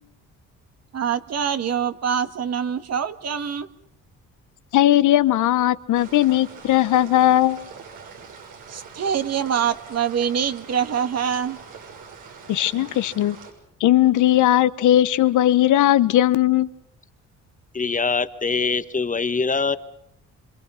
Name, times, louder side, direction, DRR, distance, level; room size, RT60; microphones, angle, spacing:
voice 1, 0.9-3.7 8.7-11.6 12.5-12.9, right 8 dB, 55° right, 10 dB, 1.8 m, -25 dB
voice 2, 4.7-7.7 12.5-13.4 13.8-16.7, left 13 dB, 80° left, 14 dB, 1.1 m, -18 dB
sound 1, 5.9-13.5, right 6 dB, 85° right, 6.7 m, -43 dB
voice 3, 17.7-19.8, left 4 dB, 25° left, 12 dB, 1.6 m, -23 dB
27.0 x 25.5 x 5.7 m, 0.75 s
cardioid pair, 90°, 30 cm